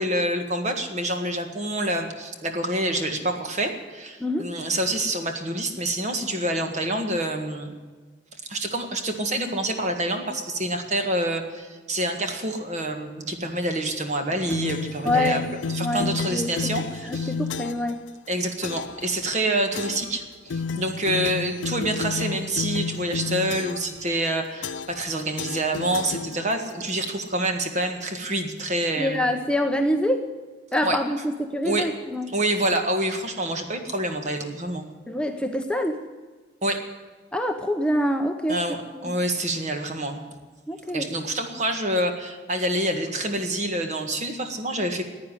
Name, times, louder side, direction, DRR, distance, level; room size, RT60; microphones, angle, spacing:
voice 1, 0.0-7.7 8.5-15.4 15.7-17.3 18.3-29.2 30.8-31.0 31.6-31.9 32.3-34.8 36.6-36.8 38.5-38.8 39.0-40.2 40.9-45.0, right 1 dB, 40° right, 5 dB, 1.8 m, -27 dB
sound 1, 14.5-17.9 18.6-19.0 19.7-20.2 20.5-24.0 24.6-25.1 25.4-26.7, left 5 dB, 85° left, 0.5 m, -31 dB
voice 2, 15.0-15.5 15.8-16.7 17.0-18.0 29.0-30.3 30.7-32.3 35.1-36.0 37.3-38.6 39.0-39.1 40.7-41.1, left 1 dB, 5° left, 4 dB, 0.7 m, -25 dB
15.5 x 9.5 x 9.8 m, 1.4 s
head